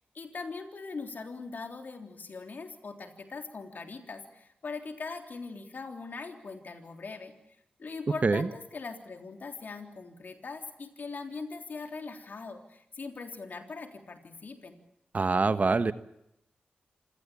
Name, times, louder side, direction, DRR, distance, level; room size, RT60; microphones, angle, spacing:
voice 1, 0.1-7.4 7.8-14.8, left 4 dB, 60° left, 5 dB, 3.5 m, -41 dB
voice 2, 15.1-15.9, right 4 dB, 50° right, 12 dB, 1.2 m, -24 dB
26.5 x 18.0 x 8.5 m, 0.80 s
cardioid pair, 45°, 3 cm